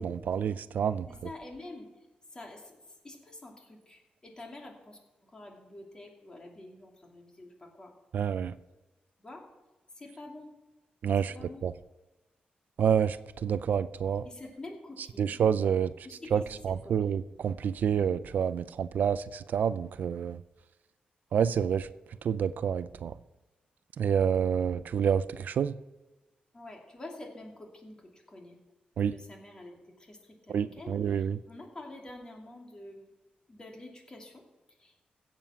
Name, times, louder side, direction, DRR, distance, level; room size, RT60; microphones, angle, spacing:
voice 1, 0.0-1.1 8.1-8.5 11.0-11.3 11.6-11.7 12.8-13.2 13.4-14.2 15.2-15.9 16.3-20.4 21.3-21.9 22.2-23.1 24.0-25.7 29.0-29.1 30.5-31.4, right 8 dB, 70° right, 15 dB, 0.4 m, -28 dB
voice 2, 1.1-7.9 9.2-9.4 9.9-10.5 11.2-11.7 14.2-15.4 16.0-17.2 26.5-28.6 29.1-33.1 33.5-35.1, left 2 dB, 25° left, 1 dB, 2.7 m, -48 dB
16.0 x 7.5 x 5.8 m, 1.1 s
wide cardioid pair, 130°, 3 cm